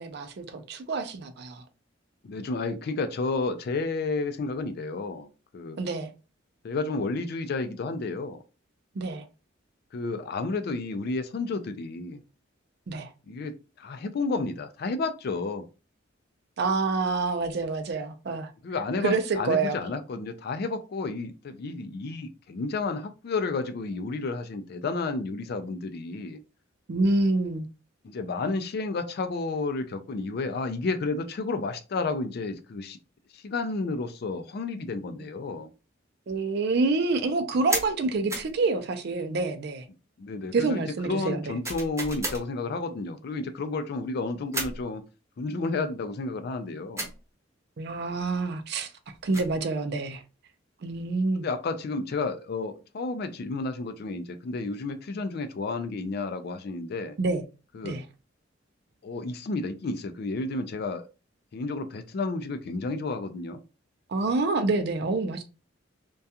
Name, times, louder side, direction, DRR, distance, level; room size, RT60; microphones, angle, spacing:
voice 1, 0.0-1.6 5.8-6.1 9.0-9.3 12.9-13.1 16.6-18.5 19.0-19.8 26.9-27.7 36.3-39.8 40.5-41.6 47.8-48.9 49.2-50.2 50.8-51.4 57.2-57.4 57.8-58.0 64.1-65.4, right 3 dB, 55° right, 0.4 m, -27 dB
voice 2, 2.2-5.8 6.6-8.4 9.9-12.2 13.3-15.6 18.6-26.4 28.0-33.0 33.3-35.7 40.2-45.0 45.4-47.1 51.4-57.2 57.7-58.0 59.0-61.1 61.5-63.6, left 3 dB, 55° left, 0.4 m, -31 dB
sound 1, 37.7-37.9 38.3-38.5 41.6-42.4 44.5-44.8 47.0-47.2 49.1-49.6, right 2 dB, 15° right, 0.7 m, -32 dB
2.3 x 2.3 x 2.7 m
head